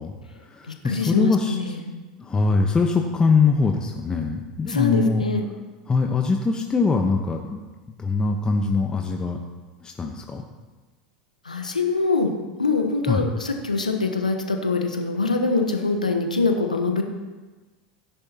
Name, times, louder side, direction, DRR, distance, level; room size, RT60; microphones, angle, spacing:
voice 1, 0.0-1.6 2.2-5.2 5.9-7.6 7.9-9.4 9.8-10.4 13.1-13.3, left 4 dB, 20° left, 3 dB, 1.0 m, -22 dB
voice 2, 0.8-1.9 4.7-5.4 11.4-12.3 12.6-17.0, left 3 dB, 90° left, 4 dB, 1.1 m, -24 dB
16.5 x 10.5 x 2.9 m, 1.3 s
figure-of-eight pair, 80°, 4 cm